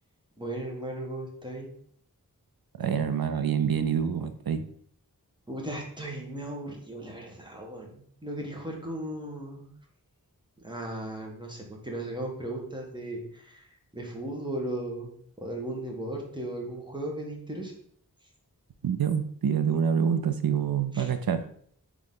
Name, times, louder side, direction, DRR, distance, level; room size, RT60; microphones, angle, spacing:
voice 1, 0.4-1.7 5.5-9.7 10.6-13.7 13.9-15.1 15.4-17.7 20.9-21.1, right 1 dB, 15° right, 0 dB, 1.2 m, -36 dB
voice 2, 2.8-4.7 18.8-21.4, right 7 dB, 75° right, 10 dB, 0.5 m, -26 dB
3.9 x 3.5 x 3.7 m, 0.63 s
wide cardioid pair, 50°, 36 cm